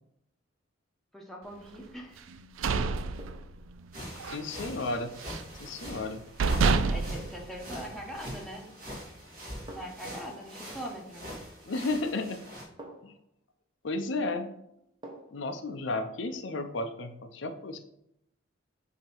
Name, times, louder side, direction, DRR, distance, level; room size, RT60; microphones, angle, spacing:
voice 1, 1.1-2.3 6.9-8.7 9.7-11.3, equal, ahead, -1 dB, 1.0 m, -42 dB
sound 1, 1.7-2.0 3.2-3.6 5.7-5.9 6.7-7.2 8.5-8.9 9.7-10.1 11.8-11.9 12.8-13.3 15.0-15.5 15.9-16.0, right 1 dB, 25° right, 1.0 m, -48 dB
sound 2, 2.3-3.9 4.2-4.5 4.8-5.6 6.0-6.1 6.4-8.2, right 4 dB, 85° right, 0.4 m, -28 dB
sound 3, 3.9-12.6, equal, 45° right, 2.0 m, -43 dB
voice 2, 4.2-5.1 5.6-6.2 11.6-12.4 13.0-13.1 13.8-14.5 15.3-17.8, left 2 dB, 65° left, 7 dB, 0.5 m, -33 dB
7.6 x 2.8 x 4.6 m, 0.77 s
head